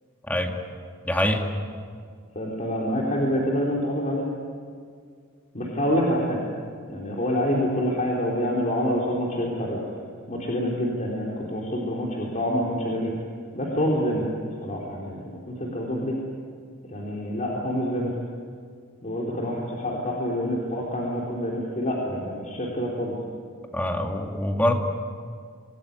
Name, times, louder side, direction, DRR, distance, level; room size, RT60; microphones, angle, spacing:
voice 1, 1.1-1.4 23.7-24.7, left 1 dB, 10° left, 2 dB, 2.3 m, -24 dB
voice 2, 2.4-4.2 5.5-6.5 6.9-9.8 10.3-13.1 13.5-14.3 14.6-16.2 16.9-18.1 19.0-23.1, equal, 35° left, -3 dB, 3.8 m, -27 dB
27.0 x 19.5 x 9.6 m, 2.1 s
head